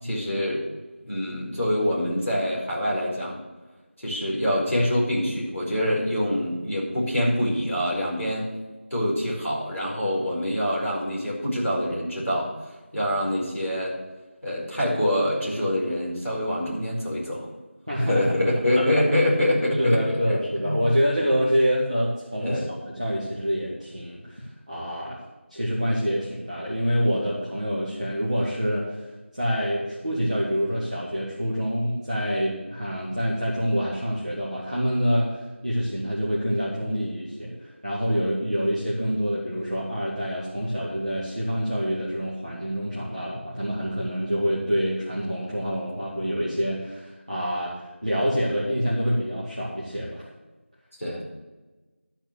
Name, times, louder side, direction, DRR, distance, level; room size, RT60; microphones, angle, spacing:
voice 1, 0.0-0.6 1.0-3.4 4.0-8.5 8.9-12.5 12.9-13.9 14.4-17.5 18.1-20.4 20.6-20.8 22.4-22.7 51.0-51.3, left 1 dB, 5° left, -20 dB, 3.2 m, -25 dB
voice 2, 17.9-18.3 18.7-18.9 19.5-25.2 25.5-29.1 29.3-50.3, equal, 30° right, -8 dB, 1.7 m, -26 dB
12.5 x 4.4 x 8.2 m, 1.2 s
figure-of-eight pair, 180°, 7 cm